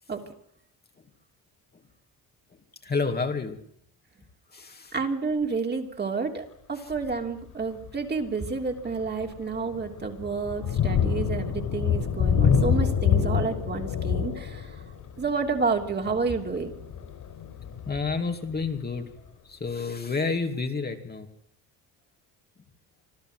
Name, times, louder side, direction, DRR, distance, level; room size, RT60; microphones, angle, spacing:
voice 1, 2.8-3.6 4.5-4.9 6.8-6.9 17.9-19.1 19.4-21.3, left 4 dB, 25° left, 5 dB, 2.5 m, -29 dB
voice 2, 4.9-14.7 15.2-16.7, right 4 dB, 30° right, 3 dB, 3.2 m, -30 dB
Thunder, 6.9-7.2 7.8-7.9 8.4-19.0, left 7 dB, 60° left, 5.1 m, -27 dB
26.0 x 14.0 x 7.8 m, 0.70 s
cardioid pair, 110°, 36 cm